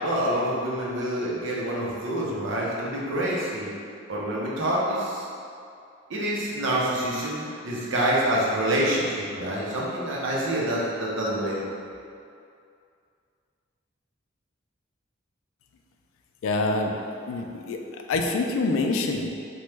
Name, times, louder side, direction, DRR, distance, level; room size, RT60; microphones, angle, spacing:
voice 1, 0.0-3.7 4.1-5.2 6.1-11.6, right 1 dB, 70° right, -5 dB, 0.6 m, -27 dB
voice 2, 16.4-16.9 17.3-17.8 18.1-19.3, left 3 dB, 85° left, 3 dB, 0.3 m, -25 dB
3.0 x 2.2 x 3.2 m, 2.4 s
head